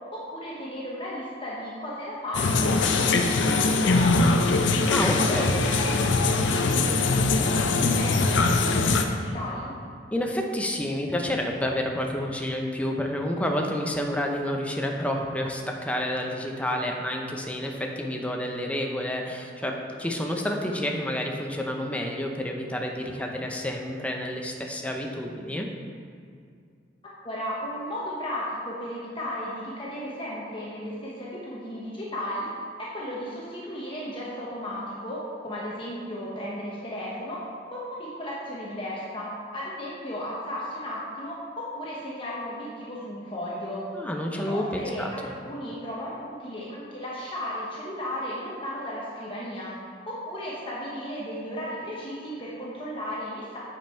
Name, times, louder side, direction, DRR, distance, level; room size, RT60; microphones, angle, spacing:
voice 1, 0.3-4.6 5.2-9.7 27.2-32.5 32.8-43.9 44.3-49.7 50.1-53.6, equal, 30° left, -6 dB, 1.1 m, -35 dB
sound 1, 2.3-9.1, left 3 dB, 80° left, 0.6 m, -22 dB
voice 2, 4.8-5.6 10.1-25.7 43.9-45.3, left 1 dB, 5° left, 1 dB, 0.7 m, -29 dB
7.9 x 5.4 x 4.4 m, 2.2 s
head